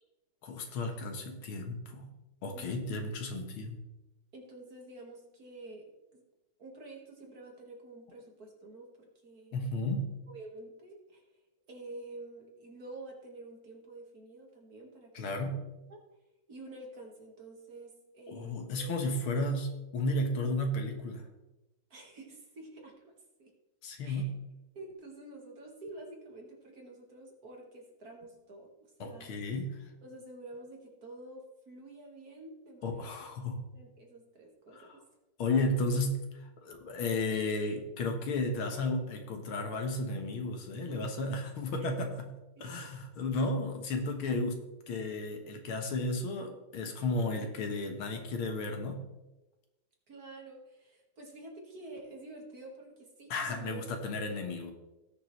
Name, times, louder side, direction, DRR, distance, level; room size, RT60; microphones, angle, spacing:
voice 1, 0.4-2.1 2.4-3.8 9.5-10.1 15.1-15.6 18.3-21.2 23.8-24.3 29.0-29.9 32.8-33.6 34.7-34.9 35.4-42.3 42.6-49.0 53.3-54.7, left 2 dB, 80° left, 4 dB, 2.1 m, -33 dB
voice 2, 2.5-2.9 4.3-6.2 6.6-9.6 10.3-11.2 11.7-15.1 15.5-15.6 15.9-16.0 16.5-19.1 21.9-23.1 23.4-23.5 24.0-24.3 24.7-29.3 30.0-33.1 33.7-35.0 42.6-42.7 50.1-54.0, right 2 dB, 45° right, 0 dB, 2.2 m, -49 dB
18.0 x 6.8 x 3.2 m, 1.0 s
omnidirectional pair, 2.3 m